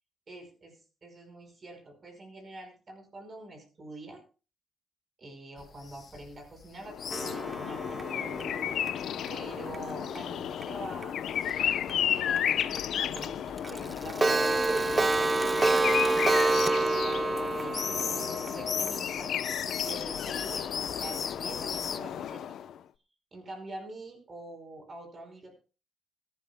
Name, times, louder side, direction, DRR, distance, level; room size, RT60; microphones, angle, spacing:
voice 1, 0.3-4.2 5.2-8.3 9.3-11.1 11.4-15.1 15.6-17.8 18.1-19.3 19.8-20.7 21.0-22.6 23.3-25.5, right 2 dB, 40° right, 5 dB, 5.3 m, -46 dB
sound 1, 5.6-8.1 8.3-22.0, left 6 dB, 50° left, 1.0 m, -40 dB
sound 2, 6.8-22.8, left 9 dB, 70° left, 0.7 m, -33 dB
Clock, 7.1-10.2 10.6-10.7 11.0-11.1 11.5-11.6 11.9-12.0 12.4-12.5 12.7-12.8 13.2-13.3 13.6-19.4, right 3 dB, 20° right, 0.5 m, -28 dB
22.5 x 11.5 x 2.3 m, 0.34 s
cardioid pair, 90°, 0 cm